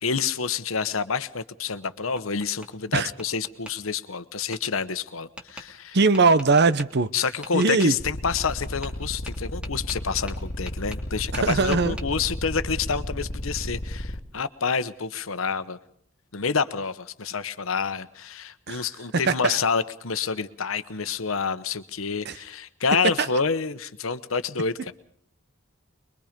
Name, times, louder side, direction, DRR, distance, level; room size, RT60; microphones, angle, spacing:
voice 1, 0.0-6.0 7.1-15.8 16.3-24.9, left 5 dB, 75° left, 12 dB, 1.1 m, -28 dB
Tap, 1.7-2.7 3.2-3.7 4.5-4.6 5.4-5.7 6.1-6.9 7.4-7.9 8.6-9.0 9.3-11.1 11.3-12.1, equal, 5° right, 2.6 m, -42 dB
voice 2, 5.9-7.1 7.5-8.0 11.3-12.0 18.7-18.8 19.1-19.6 22.3-22.4 23.2-23.3, right 4 dB, 55° right, 15 dB, 0.9 m, -20 dB
sound 1, 8.0-14.2, left 1 dB, 50° left, 1.8 m, -33 dB
23.5 x 22.5 x 5.2 m, 0.68 s
head